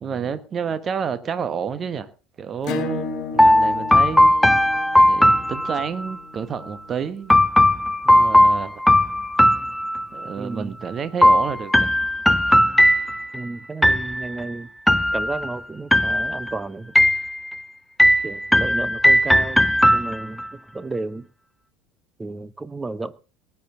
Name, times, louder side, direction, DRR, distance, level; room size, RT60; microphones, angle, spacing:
voice 1, 0.0-2.1 2.4-4.3 4.9-7.3 8.0-8.8 10.1-11.9, right 7 dB, 30° right, 1.3 m, -29 dB
Acoustic guitar / Strum, 2.6-7.9, left 4 dB, 45° left, 1.8 m, -35 dB
sound 1, 3.4-6.1 7.3-10.3 11.2-13.4 13.8-14.4 14.9-15.5 15.9-16.5 17.0-17.6 18.0-20.5, left 1 dB, 5° left, 0.6 m, -17 dB
voice 2, 10.4-10.8 13.3-14.7 15.1-16.9 18.2-21.3 22.2-23.1, right 3 dB, 15° right, 0.8 m, -32 dB
19.0 x 9.8 x 3.8 m
figure-of-eight pair, 70°, 0 cm